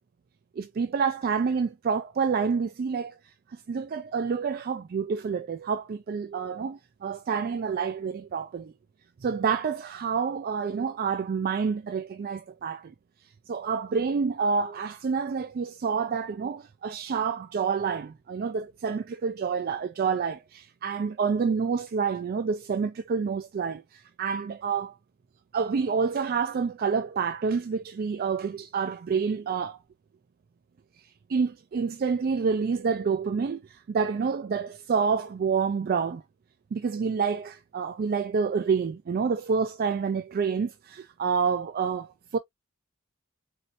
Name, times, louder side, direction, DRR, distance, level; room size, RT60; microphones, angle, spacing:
voice 1, 0.6-3.1 3.5-8.7 9.2-12.9 13.5-24.9 25.5-29.8 31.3-36.2 36.7-42.4, right 5 dB, 45° right, 0.3 m, -28 dB
4.2 x 2.7 x 2.5 m
head